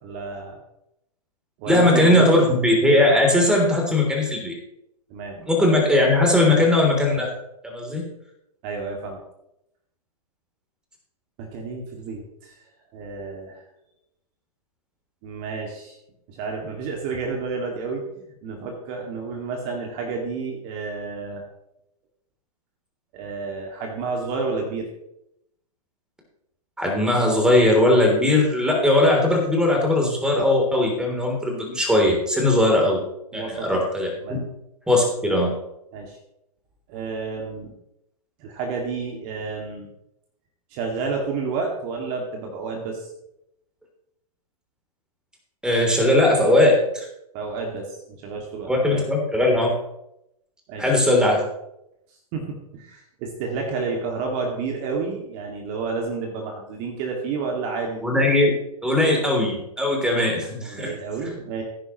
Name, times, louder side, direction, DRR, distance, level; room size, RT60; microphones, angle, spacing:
voice 1, 0.0-0.6 1.6-2.3 5.1-5.4 8.6-9.2 11.4-12.5 12.9-13.6 15.2-15.9 16.3-21.4 23.1-24.9 33.3-33.9 34.2-34.4 35.9-36.2 36.9-37.7 38.4-39.9 40.7-43.1 47.3-49.0 50.7-50.8 52.3-58.0 60.6-61.6, right 4 dB, 40° right, 1 dB, 2.2 m, -30 dB
voice 2, 1.7-4.6 5.5-7.3 7.6-8.1 26.8-33.0 33.3-34.1 34.9-35.5 45.6-47.0 48.6-49.7 50.8-51.4 58.0-58.5 58.8-60.9, left 1 dB, 5° right, 0 dB, 3.3 m, -19 dB
16.0 x 10.5 x 3.1 m, 0.82 s
figure-of-eight pair, 110°, 20 cm